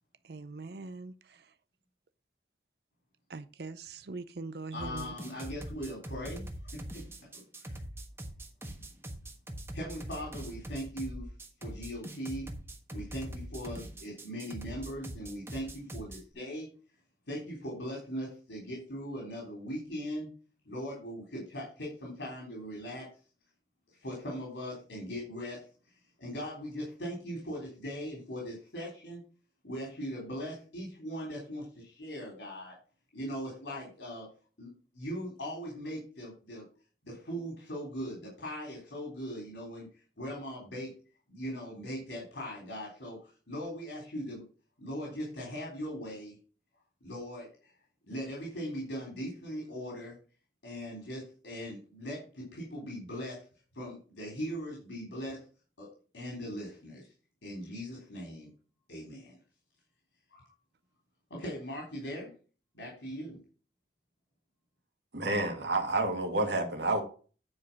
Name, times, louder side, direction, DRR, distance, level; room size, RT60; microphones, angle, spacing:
voice 1, 0.2-1.5 3.3-5.1, right 3 dB, 65° right, 0.6 m, -42 dB
voice 2, 4.7-7.0 7.6-7.8 9.7-11.3 11.6-12.5 12.9-16.7 17.3-20.3 20.7-23.1 24.0-25.7 26.2-29.2 29.6-32.7 33.1-34.3 34.6-34.7 34.9-36.6 37.0-39.9 40.2-40.9 41.3-44.4 44.8-46.4 47.0-47.7 48.1-50.1 50.6-53.5 53.7-55.4 55.8-55.9 56.1-57.1 57.4-58.5 58.9-59.4 60.3-60.5 61.3-62.3 62.7-63.4, equal, 90° left, 3.5 m, -40 dB
sound 1, 4.8-16.2, right 1 dB, 15° right, 1.3 m, -42 dB
voice 3, 65.1-67.0, right 2 dB, 85° right, 2.1 m, -29 dB
9.7 x 5.0 x 5.8 m
head